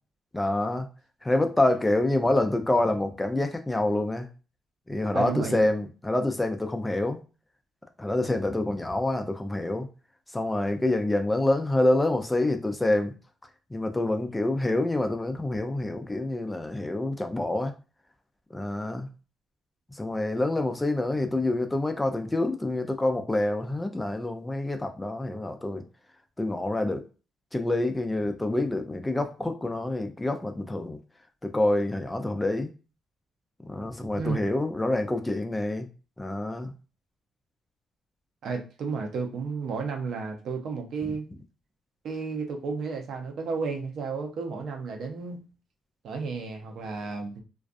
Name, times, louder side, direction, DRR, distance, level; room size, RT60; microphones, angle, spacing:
voice 1, 0.3-0.9 1.2-4.3 4.9-7.2 8.0-9.9 10.3-13.1 13.7-17.7 18.5-19.1 19.9-25.8 26.4-27.0 27.5-31.0 31.4-32.7 33.6-35.9 36.2-36.7 41.0-41.1, left 2 dB, 15° left, 6 dB, 0.3 m, -27 dB
voice 2, 5.1-5.7 34.1-34.4 38.4-41.3 42.0-45.4 46.0-47.4, right 4 dB, 65° right, 3 dB, 0.6 m, -32 dB
2.4 x 2.2 x 2.4 m, 0.34 s
cardioid pair, 90°, 0 cm